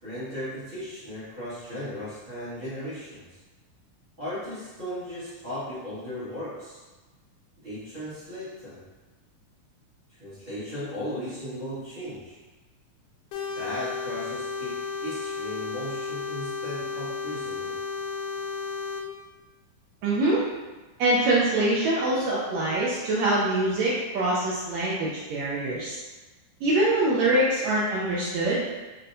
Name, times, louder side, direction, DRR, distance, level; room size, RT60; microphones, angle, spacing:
voice 1, 0.0-3.4 4.2-6.8 7.6-8.8 10.1-12.4 13.5-17.8, equal, 60° right, -14 dB, 0.5 m, -36 dB
sound 1, 13.3-19.0, left 5 dB, 85° left, 2.1 m, -33 dB
voice 2, 20.0-20.4 21.0-26.0 26.6-28.7, right 2 dB, 85° right, -6 dB, 1.5 m, -24 dB
5.7 x 2.2 x 2.6 m, 1.2 s
omnidirectional pair, 3.7 m